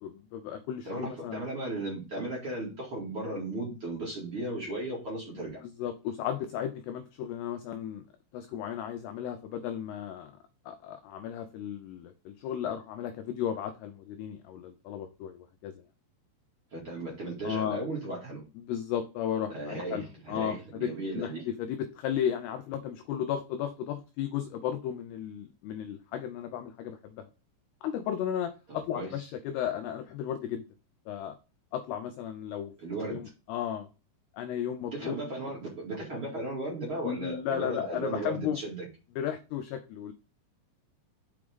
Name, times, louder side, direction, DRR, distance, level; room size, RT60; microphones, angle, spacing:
voice 1, 0.0-1.4 5.6-8.0 8.3-10.4 10.7-15.7 17.4-17.8 18.6-27.2 27.8-30.7 31.1-31.4 31.7-32.7 33.1-33.9 34.3-35.2 37.0-38.6 39.2-40.1, left 9 dB, 85° left, 9 dB, 2.3 m, -34 dB
voice 2, 0.9-5.6 16.7-18.4 19.5-21.4 28.9-29.1 32.8-33.2 34.9-38.8, right 2 dB, 40° right, -4 dB, 2.2 m, -36 dB
6.3 x 6.0 x 3.6 m, 0.31 s
omnidirectional pair, 5.3 m